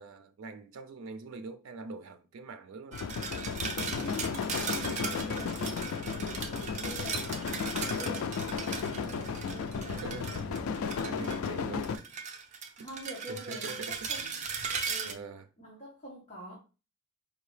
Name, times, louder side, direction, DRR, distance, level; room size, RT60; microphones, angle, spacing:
voice 1, 0.0-3.0 6.2-6.6 9.8-10.3 10.8-12.1 12.8-12.9 13.3-14.5 15.0-15.5, right 4 dB, 90° right, 0.4 m, -44 dB
sound 1, 2.9-12.0, left 5 dB, 90° left, 0.4 m, -34 dB
sound 2, 2.9-11.5 11.8-15.1, right 5 dB, 35° right, 0.5 m, -38 dB
voice 2, 3.9-7.7 8.0-10.7 11.1-11.4 12.8-14.5 14.9-15.2 15.6-16.5, equal, 35° left, 1.3 m, -46 dB
4.8 x 2.7 x 3.2 m
head